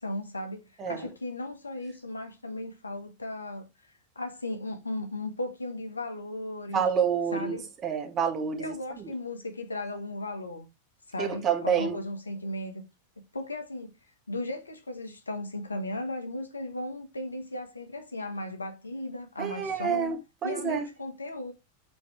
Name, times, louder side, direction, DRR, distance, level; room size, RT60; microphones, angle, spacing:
voice 1, 0.0-3.7 4.1-6.8 7.3-7.6 8.6-10.7 11.1-12.7 13.3-13.9 14.3-20.1 20.4-21.5, left 1 dB, 80° left, 1.5 m, -36 dB
voice 2, 0.8-1.1 6.7-8.7 9.0-9.1 11.2-12.0 19.4-20.9, right 7 dB, 30° right, 1.8 m, -28 dB
7.2 x 4.3 x 4.6 m
figure-of-eight pair, 90°, 0 cm